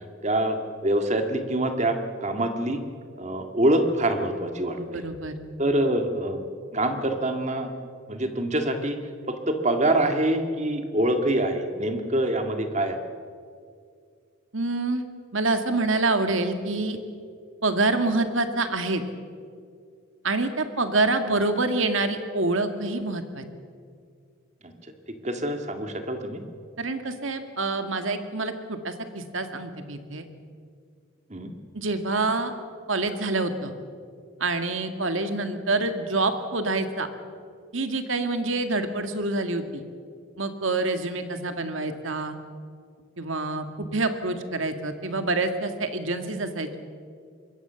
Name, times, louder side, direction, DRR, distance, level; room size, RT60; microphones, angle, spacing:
voice 1, 0.2-0.6 0.8-2.8 3.2-5.0 5.6-6.4 6.7-7.7 8.1-9.0 9.3-13.0 24.6-24.7 25.2-26.4 31.3-31.5, right 1 dB, 35° right, 6 dB, 2.0 m, -25 dB
voice 2, 4.8-5.3 14.5-15.0 15.3-17.0 17.6-19.0 20.2-23.4 26.8-30.3 31.7-32.5 32.9-33.7 34.4-37.1 37.7-39.8 40.4-42.4 43.2-46.8, right 2 dB, 70° right, 8 dB, 1.9 m, -26 dB
25.0 x 21.5 x 7.0 m, 2.2 s
head